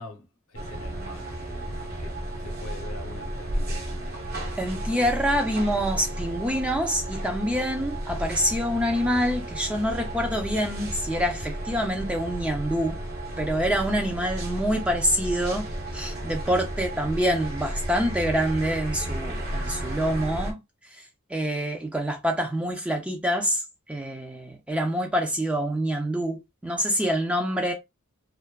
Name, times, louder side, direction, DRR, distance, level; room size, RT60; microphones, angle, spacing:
voice 1, 0.0-1.7 2.0-2.1 2.4-4.2, left 2 dB, 70° left, 0.7 m, -43 dB
sound 1, 0.6-20.5, right 1 dB, 45° right, 0.6 m, -33 dB
voice 2, 4.6-13.0 13.4-20.6 20.9-21.0 21.3-23.6 23.9-27.7, equal, 5° right, 0.3 m, -26 dB
2.6 x 2.3 x 2.2 m
head